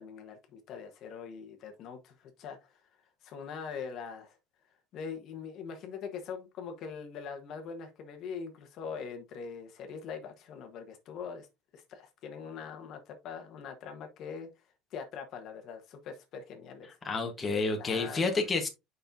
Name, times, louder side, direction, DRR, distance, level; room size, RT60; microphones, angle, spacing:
voice 1, 0.0-2.8 3.2-4.4 4.9-11.5 11.7-14.5 14.9-17.0 17.8-18.3, left 6 dB, 45° left, 1.1 m, -42 dB
voice 2, 17.0-18.7, left 3 dB, 15° left, 1.1 m, -29 dB
6.8 x 5.4 x 2.6 m
cardioid pair, 165°, 0 cm